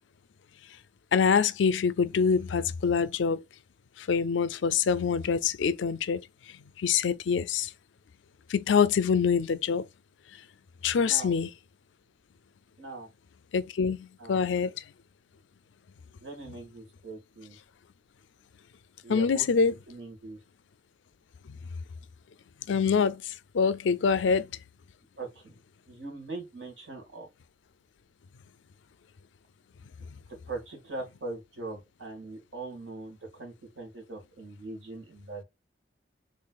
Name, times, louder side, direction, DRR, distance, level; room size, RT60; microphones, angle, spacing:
voice 1, 1.1-3.4 4.0-6.2 6.8-7.7 8.5-9.9 10.8-11.5 13.5-14.7 19.1-19.7 21.5-21.6 22.7-24.5, left 6 dB, 85° left, 0.4 m, -25 dB
voice 2, 11.0-11.3 12.8-13.1 14.2-14.4 16.2-17.6 19.0-19.5 19.9-20.4 25.2-25.6 25.9-27.3 30.5-35.4, right 2 dB, 85° right, 2.0 m, -41 dB
3.8 x 3.2 x 2.3 m
head